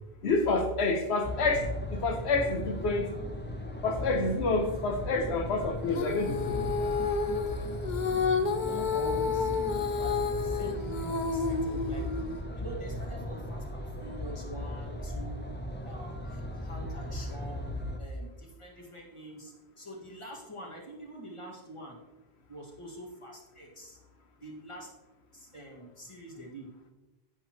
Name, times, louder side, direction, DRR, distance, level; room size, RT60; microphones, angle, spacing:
voice 1, 0.2-3.1 3.8-6.7 11.7-11.8, left 3 dB, 90° left, 6 dB, 1.2 m, -28 dB
sound 1, 1.2-18.0, left 1 dB, 10° left, 0.7 m, -37 dB
Female singing, 5.9-12.4, left 5 dB, 50° left, 0.7 m, -30 dB
voice 2, 8.5-12.1 12.5-15.5 15.8-17.7 18.0-22.0 22.5-24.0 24.4-24.9 25.3-26.9, right 1 dB, 30° left, -2 dB, 2.1 m, -45 dB
10.5 x 9.3 x 3.1 m, 1.1 s
omnidirectional pair, 1.1 m